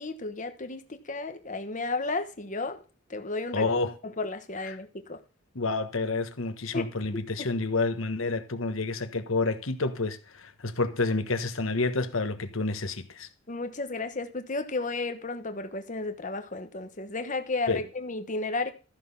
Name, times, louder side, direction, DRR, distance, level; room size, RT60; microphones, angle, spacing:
voice 1, 0.0-2.8 3.1-3.7 4.2-5.2 6.7-6.9 13.5-18.7, left 3 dB, 40° left, 1.1 m, -33 dB
voice 2, 3.5-3.9 5.5-13.3 17.7-17.8, left 3 dB, 90° left, 1.4 m, -29 dB
13.5 x 6.0 x 5.6 m
head